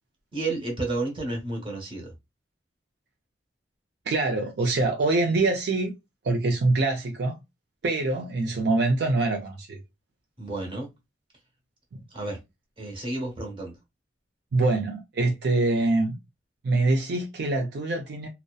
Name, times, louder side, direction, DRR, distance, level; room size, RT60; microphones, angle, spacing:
voice 1, 0.3-2.1 10.4-10.9 12.1-12.4 12.8-13.8, right 2 dB, 30° right, 1.0 m, -31 dB
voice 2, 4.1-5.9 6.2-7.4 7.8-9.8 14.5-16.2 16.6-18.3, right 2 dB, 65° right, 0.4 m, -24 dB
2.6 x 2.0 x 2.2 m
head